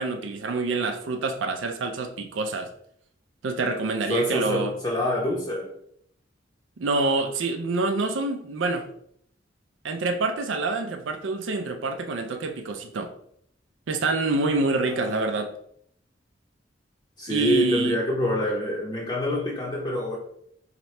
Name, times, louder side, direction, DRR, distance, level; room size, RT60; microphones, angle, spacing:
voice 1, 0.0-2.7 3.4-4.7 6.8-8.9 9.8-13.1 13.9-15.5 17.3-18.0, right 3 dB, 85° right, 6 dB, 0.5 m, -26 dB
voice 2, 4.1-5.7 14.9-15.2 17.2-20.2, equal, 25° left, -5 dB, 0.7 m, -26 dB
4.1 x 2.9 x 3.2 m, 0.68 s
head